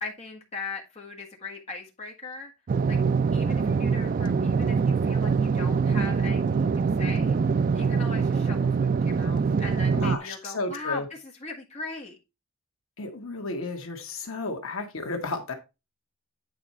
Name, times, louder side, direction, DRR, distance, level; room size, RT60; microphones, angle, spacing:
voice 1, 0.0-2.5 2.9-3.0 3.3-7.4 7.7-12.2, left 3 dB, 30° left, 1.5 m, -39 dB
sound 1, 2.7-10.2, right 5 dB, 40° right, 0.3 m, -24 dB
voice 2, 9.9-11.0 13.0-15.5, left 3 dB, 65° left, 1.6 m, -33 dB
9.1 x 4.4 x 4.3 m
head